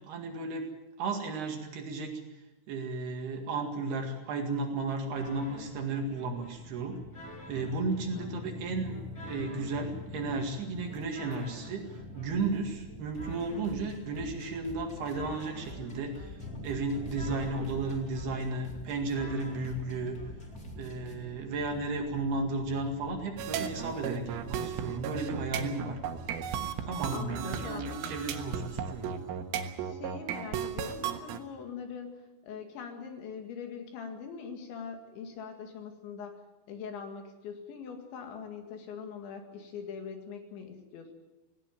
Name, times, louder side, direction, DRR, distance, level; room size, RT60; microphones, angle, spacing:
voice 1, 0.1-0.7 1.0-2.2 2.7-7.0 7.5-8.9 9.2-20.2 20.8-26.0 26.8-29.2, right 3 dB, 60° right, 3 dB, 3.8 m, -34 dB
sound 1, 5.2-21.1, left 2 dB, 25° left, 2.5 m, -47 dB
sound 2, 7.1-26.7, left 1 dB, 30° right, 6.1 m, -46 dB
voice 2, 8.1-8.6 27.1-28.2 29.6-36.4 36.7-41.1, left 6 dB, 70° left, 5 dB, 4.2 m, -42 dB
sound 3, 23.4-31.4, right 8 dB, 85° right, 3.9 m, -35 dB
18.5 x 18.0 x 9.1 m, 1.1 s
omnidirectional pair, 5.7 m